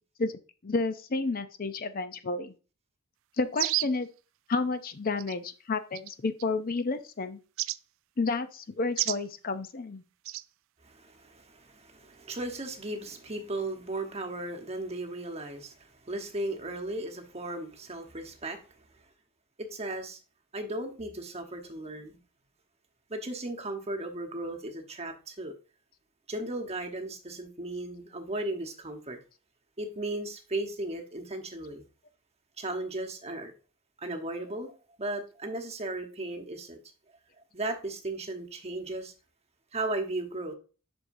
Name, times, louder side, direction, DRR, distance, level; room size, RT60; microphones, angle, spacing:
voice 1, 0.6-2.5 3.4-4.1 4.5-7.4 8.2-10.0, left 3 dB, 45° left, 0.6 m, -31 dB
sound 1, 3.5-4.0 5.2-5.4 5.9-6.4 7.6-7.8 9.0-9.2 10.2-10.4, right 17 dB, 65° right, 0.3 m, -30 dB
voice 2, 10.8-18.6 19.6-20.2 20.5-22.2 23.1-25.5 26.3-29.2 29.8-31.8 32.6-33.5 34.0-36.8 37.5-39.1 39.7-40.5, right 2 dB, 30° right, 1.1 m, -36 dB
7.9 x 6.2 x 2.6 m
head